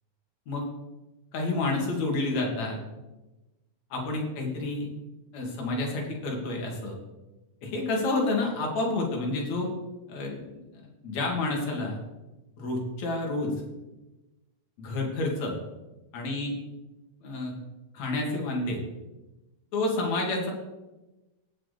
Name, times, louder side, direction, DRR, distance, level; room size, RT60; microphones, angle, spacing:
voice 1, 1.3-2.8 3.9-4.9 5.3-6.9 7.6-9.7 10.1-10.5 11.0-12.0 12.6-13.5 14.8-15.6 16.1-16.5 17.2-17.5 17.9-18.8 19.7-20.5, left 2 dB, 55° left, 0 dB, 3.2 m, -29 dB
18.0 x 6.8 x 4.2 m, 1.1 s
omnidirectional pair, 4.1 m